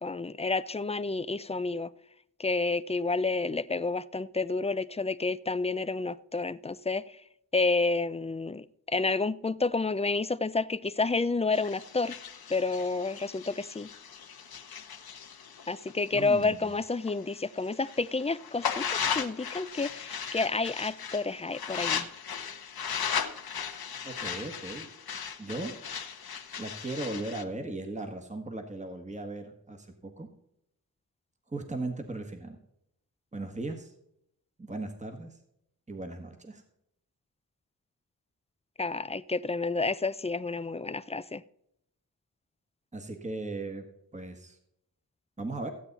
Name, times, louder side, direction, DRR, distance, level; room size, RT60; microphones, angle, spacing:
voice 1, 0.0-1.9 2.4-7.0 7.5-12.2 12.5-13.9 15.7-22.1 38.8-41.4, left 3 dB, 15° left, 0.4 m, -30 dB
sound 1, 11.5-17.2 17.6-27.4, left 7 dB, 75° left, 1.1 m, -37 dB
voice 2, 16.1-16.7 24.0-24.9 25.4-25.8 26.6-30.3 31.5-32.6 33.3-33.9 34.6-35.4 35.9-36.6 42.9-43.8 44.1-44.6 45.4-45.7, right 2 dB, 20° right, 1.5 m, -37 dB
15.0 x 8.5 x 4.1 m
wide cardioid pair, 80°, 37 cm